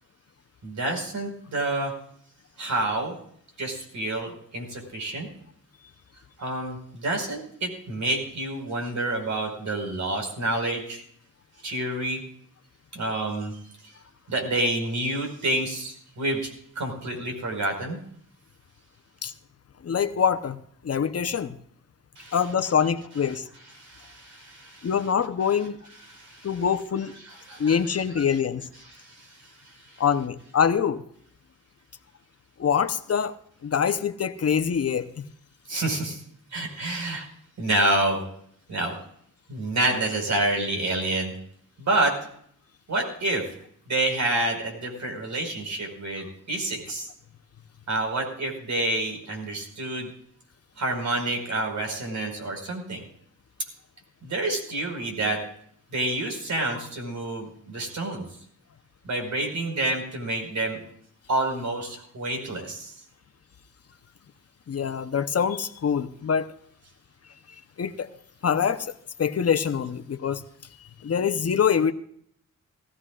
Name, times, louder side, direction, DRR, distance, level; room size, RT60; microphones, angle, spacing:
voice 1, 0.6-1.9 2.6-3.1 3.6-5.3 6.4-11.0 11.6-12.2 12.9-13.6 14.3-16.5 16.8-18.0 22.2-22.5 23.2-25.1 25.5-26.7 27.0-28.4 28.7-30.0 35.7-36.2 36.5-37.3 37.6-38.2 38.7-38.9 39.5-41.3 41.8-42.1 42.9-43.4 43.9-47.1 47.9-50.1 50.8-53.0 54.2-55.4 55.9-58.2 59.0-60.8 61.3-62.9, right 2 dB, 60° right, 3 dB, 5.0 m, -28 dB
voice 2, 19.8-21.5 22.3-23.5 24.8-25.8 26.4-27.2 27.6-28.6 30.0-31.0 32.6-33.3 33.6-35.3 64.7-66.5 67.5-68.1 68.4-68.9 69.2-70.4 71.0-71.9, left 7 dB, 50° left, 10 dB, 0.9 m, -25 dB
19.5 x 15.5 x 2.5 m, 0.64 s
cardioid pair, 95°, 32 cm